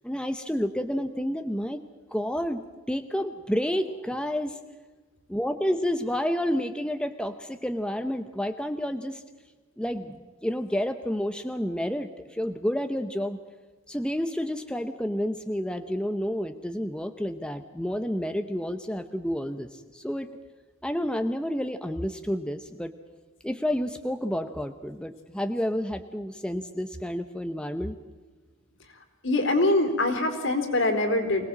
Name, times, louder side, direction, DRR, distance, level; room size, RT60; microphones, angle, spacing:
voice 1, 0.0-1.8 2.1-4.6 5.3-9.2 9.8-13.4 13.9-20.3 20.8-22.9 23.4-28.0, equal, 5° left, 7 dB, 0.8 m, -30 dB
voice 2, 29.2-31.5, left 2 dB, 65° left, 6 dB, 3.8 m, -24 dB
25.0 x 18.5 x 7.5 m, 1.3 s
head